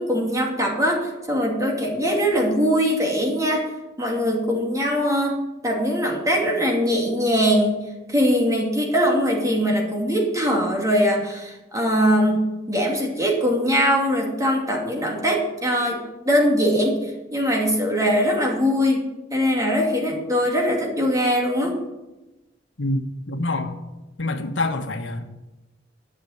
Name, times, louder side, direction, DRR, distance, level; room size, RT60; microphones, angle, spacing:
voice 1, 0.0-3.7 4.0-5.4 5.6-21.8, equal, 20° right, 0 dB, 2.7 m, -22 dB
voice 2, 22.8-23.8 24.2-25.3, left 2 dB, 85° left, 6 dB, 1.3 m, -26 dB
11.5 x 7.0 x 8.7 m, 1.0 s
head